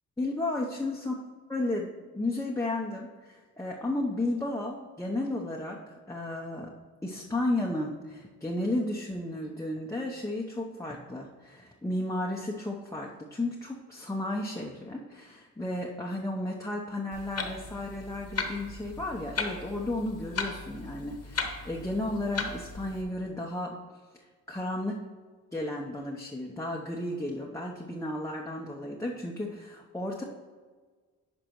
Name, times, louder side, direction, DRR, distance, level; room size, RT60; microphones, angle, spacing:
voice 1, 0.2-1.1 1.5-6.7 7.0-23.8 24.5-25.0 25.5-30.2, left 1 dB, 10° left, -3 dB, 0.8 m, -33 dB
Clock, 17.1-23.0, left 4 dB, 45° left, 1.2 m, -37 dB
9.9 x 5.2 x 3.1 m, 1.4 s
supercardioid pair, 55°, 36 cm